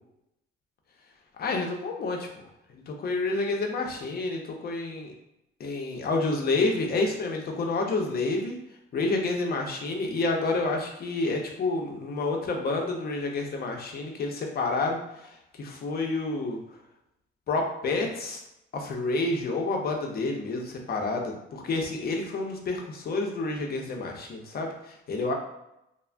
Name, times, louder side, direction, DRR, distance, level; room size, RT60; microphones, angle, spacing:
voice 1, 1.4-2.4 2.7-5.1 5.6-8.6 8.9-16.6 17.5-18.4 18.7-25.3, left 3 dB, 50° left, 2 dB, 0.6 m, -29 dB
2.4 x 2.1 x 3.2 m, 0.85 s
cardioid pair, 90°, 20 cm